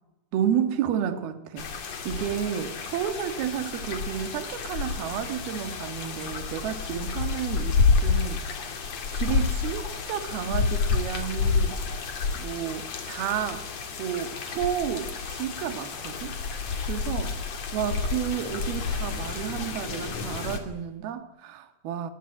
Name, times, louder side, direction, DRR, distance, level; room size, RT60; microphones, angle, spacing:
voice 1, 0.3-1.7 2.1-8.8 9.1-11.8 12.4-13.7 14.0-22.1, right 9 dB, 65° right, 3.5 m, -31 dB
sound 1, 1.6-20.6, left 5 dB, 45° left, 2.9 m, -29 dB
28.5 x 21.0 x 10.0 m
omnidirectional pair, 5.1 m